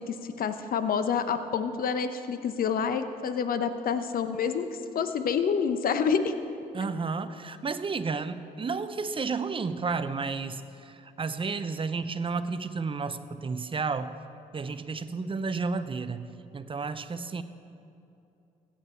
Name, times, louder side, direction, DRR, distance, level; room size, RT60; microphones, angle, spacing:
voice 1, 0.1-4.6 4.9-6.3, left 6 dB, 60° left, 10 dB, 0.8 m, -28 dB
voice 2, 6.7-14.1 14.5-16.3 16.5-17.4, right 4 dB, 35° right, 12 dB, 0.6 m, -32 dB
15.5 x 8.6 x 4.4 m, 2.8 s
supercardioid pair, 60°, 16 cm